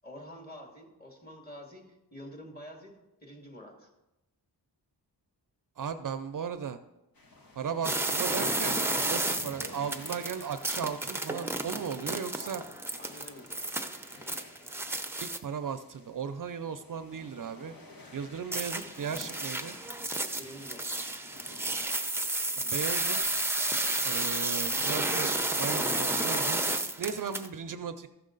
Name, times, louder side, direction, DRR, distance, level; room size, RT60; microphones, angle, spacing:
voice 1, 0.0-3.9 12.1-12.7 13.0-13.5 20.4-21.0, equal, 25° left, 1 dB, 2.2 m, -48 dB
voice 2, 5.8-6.8 7.6-12.6 15.2-17.7 18.1-19.8 22.6-23.5 24.0-26.6 27.0-28.1, right 7 dB, 55° right, 10 dB, 0.5 m, -36 dB
sound 1, 7.2-22.0, left 2 dB, 60° left, 1.7 m, -53 dB
sound 2, 7.8-15.4 18.5-27.5, right 2 dB, 5° right, 0.6 m, -31 dB
14.5 x 6.4 x 3.9 m, 0.95 s
wide cardioid pair, 100°, 40 cm